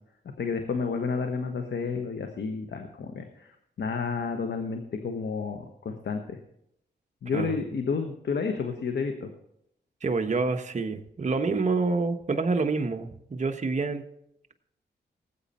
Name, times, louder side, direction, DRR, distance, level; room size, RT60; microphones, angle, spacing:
voice 1, 0.4-3.5 3.8-6.4 7.2-9.3, left 5 dB, 75° left, 6 dB, 1.2 m, -31 dB
voice 2, 10.0-14.0, right 4 dB, 40° right, 5 dB, 1.2 m, -27 dB
18.5 x 8.3 x 4.3 m, 0.76 s
cardioid pair, 70°, 18 cm